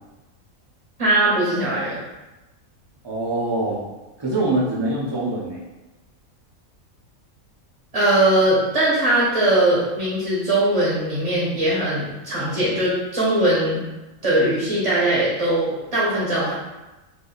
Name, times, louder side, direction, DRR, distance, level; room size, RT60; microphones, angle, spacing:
voice 1, 1.0-2.0 7.9-13.8 14.2-16.5, right 1 dB, 30° right, -8 dB, 0.7 m, -20 dB
voice 2, 3.0-3.8 4.2-5.7, right 2 dB, 45° right, -6 dB, 0.3 m, -24 dB
2.6 x 2.5 x 3.8 m, 1.1 s
omnidirectional pair, 1.5 m